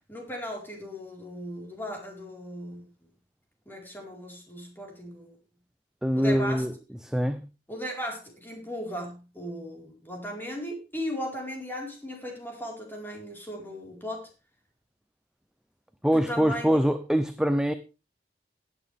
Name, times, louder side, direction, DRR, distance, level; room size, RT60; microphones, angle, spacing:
voice 1, 0.1-2.9 3.7-5.4 6.1-6.7 7.7-14.3 16.1-16.8, equal, 10° left, 4.6 m, -37 dB
voice 2, 6.0-6.7 7.0-7.4 16.0-17.7, equal, 5° right, 0.7 m, -24 dB
18.0 x 8.8 x 3.5 m
head